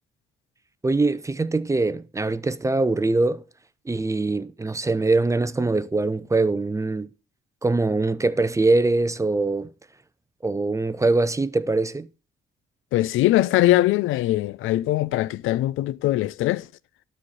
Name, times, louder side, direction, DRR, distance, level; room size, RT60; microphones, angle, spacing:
voice 1, 0.8-3.4 3.9-7.1 7.6-9.7 10.4-12.1, right 3 dB, 15° right, 0.6 m, -23 dB
voice 2, 12.9-16.7, left 15 dB, 85° left, 0.4 m, -21 dB
12.5 x 4.4 x 6.3 m
cardioid pair, 90°, 20 cm